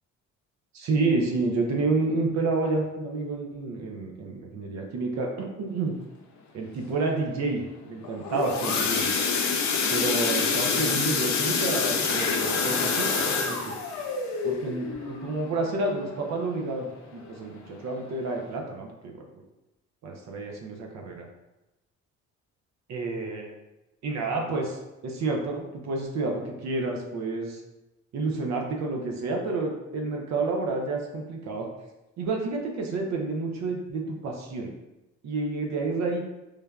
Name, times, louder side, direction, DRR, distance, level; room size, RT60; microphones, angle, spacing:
voice 1, 0.7-5.9 6.5-9.1 9.9-13.7 14.4-19.4 20.0-21.3 22.9-23.5 24.0-27.6 28.1-31.7 32.2-34.7 35.2-36.3, right 3 dB, 65° right, 1 dB, 0.5 m, -29 dB
sound 1, 8.0-16.7 17.1-17.4 17.7-17.8 18.3-18.4, left 5 dB, 70° left, 0.5 m, -27 dB
3.2 x 2.1 x 2.3 m, 0.98 s
cardioid pair, 90°, 30 cm